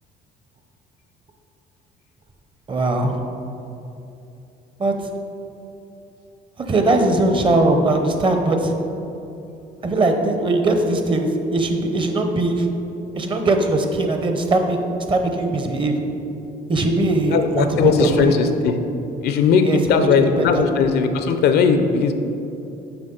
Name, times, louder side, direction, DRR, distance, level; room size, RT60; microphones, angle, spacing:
voice 1, 2.7-3.2 4.8-4.9 6.7-8.7 9.8-12.7 13.1-14.8 15.1-16.0 16.7-18.3 19.6-20.1 20.4-20.5, right 2 dB, 30° right, 5 dB, 0.7 m, -20 dB
voice 2, 17.3-18.8 19.2-22.1, left 5 dB, 70° left, 7 dB, 0.5 m, -18 dB
7.9 x 5.2 x 3.8 m, 2.8 s
cardioid pair, 110°, 17 cm